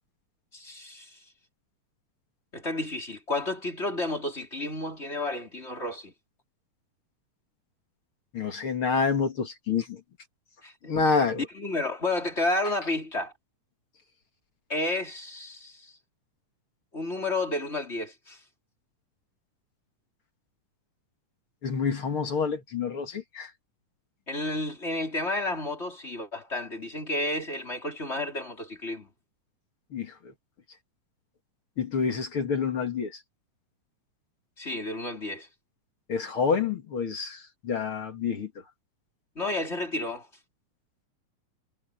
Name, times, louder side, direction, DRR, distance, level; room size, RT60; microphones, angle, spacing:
voice 1, 0.5-1.2 2.5-6.1 10.6-10.9 11.4-13.3 14.7-15.9 16.9-18.4 24.3-29.1 34.6-35.5 39.3-40.3, left 2 dB, 20° left, 4.7 m, -31 dB
voice 2, 8.3-10.0 10.8-11.5 21.6-23.5 29.9-30.3 31.8-33.2 36.1-38.5, left 5 dB, 45° left, 2.6 m, -28 dB
omnidirectional pair, 3.6 m